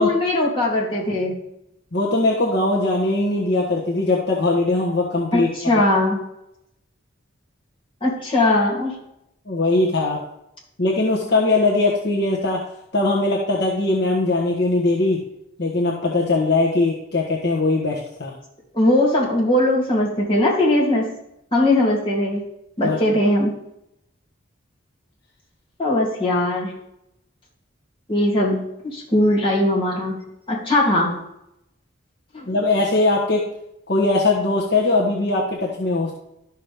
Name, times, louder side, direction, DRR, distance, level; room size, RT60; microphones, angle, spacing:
voice 1, 0.0-1.3 5.3-6.2 8.0-8.9 18.7-21.2 21.5-22.4 22.8-23.6 25.8-26.8 28.1-30.2 30.5-31.1 32.3-32.5, left 1 dB, 25° left, -5 dB, 2.7 m, -20 dB
voice 2, 1.9-5.7 9.5-10.2 10.8-12.6 12.9-15.2 15.6-18.3 22.8-23.0 32.5-33.4 33.9-36.1, left 2 dB, 55° left, -3 dB, 1.3 m, -20 dB
12.5 x 5.9 x 3.5 m, 0.82 s
head